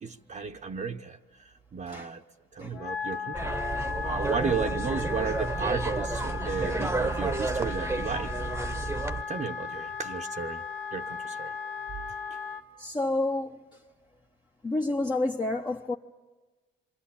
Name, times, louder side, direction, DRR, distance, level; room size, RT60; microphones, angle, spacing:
voice 1, 0.0-2.2 2.5-3.5 3.9-8.3 9.3-10.6 10.9-11.5, right 5 dB, 40° right, 1.0 m, -34 dB
Wind instrument woodwind instrument, 2.7-12.6, left 6 dB, 85° left, 2.0 m, -36 dB
sound 1, 3.3-9.2, right 3 dB, 10° right, 1.1 m, -31 dB
voice 2, 12.8-13.6 14.6-16.0, left 2 dB, 20° left, 1.0 m, -29 dB
27.5 x 25.0 x 8.7 m
cardioid pair, 90°, 20 cm